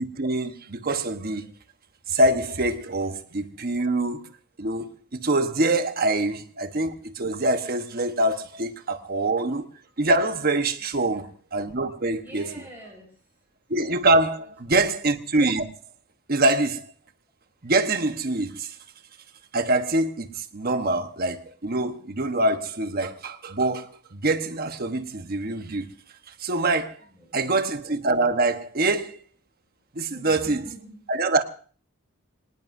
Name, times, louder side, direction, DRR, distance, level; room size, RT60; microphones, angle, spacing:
voice 1, 0.0-1.5 2.1-4.3 4.6-9.7 10.0-12.5 13.7-15.6 16.3-16.9 17.6-18.7 19.5-23.9 24.1-25.9 26.4-27.0 27.3-29.2 29.9-30.6 31.1-31.4, right 2 dB, 45° right, 1.2 m, -24 dB
voice 2, 10.9-11.3 12.1-13.4 14.4-15.0 27.1-27.7 30.1-31.0, right 1 dB, 10° right, 5.1 m, -47 dB
25.5 x 19.0 x 2.7 m
head